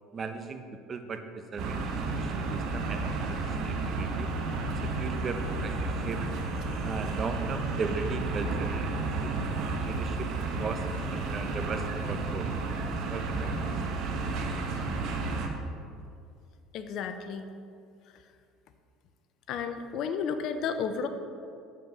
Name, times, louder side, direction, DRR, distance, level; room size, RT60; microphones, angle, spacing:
voice 1, 0.1-0.6 0.9-1.2 1.5-4.3 5.0-6.2 6.8-9.4 9.8-10.3 10.6-12.5 13.1-13.7, right 4 dB, 35° right, 7 dB, 0.9 m, -37 dB
sound 1, 1.6-15.5, right 3 dB, 60° right, 1.2 m, -32 dB
voice 2, 16.7-17.5 19.5-21.1, left 6 dB, 60° left, 8 dB, 0.7 m, -32 dB
7.7 x 7.4 x 5.5 m, 2.4 s
supercardioid pair, 85°, 0 cm